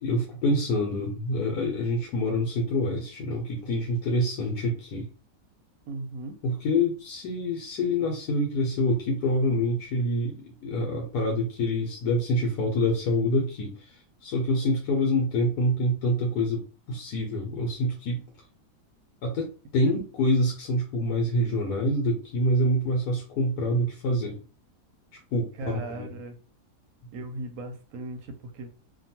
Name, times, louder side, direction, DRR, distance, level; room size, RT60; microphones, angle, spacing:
voice 1, 0.0-5.1 6.4-18.2 19.2-24.4 25.3-26.2, left 1 dB, 75° left, 0 dB, 1.2 m, -26 dB
voice 2, 5.9-6.4 19.8-19.9 25.5-26.4 27.1-28.7, right 2 dB, 70° right, 4 dB, 0.9 m, -37 dB
2.8 x 2.3 x 2.7 m, 0.36 s
omnidirectional pair, 1.8 m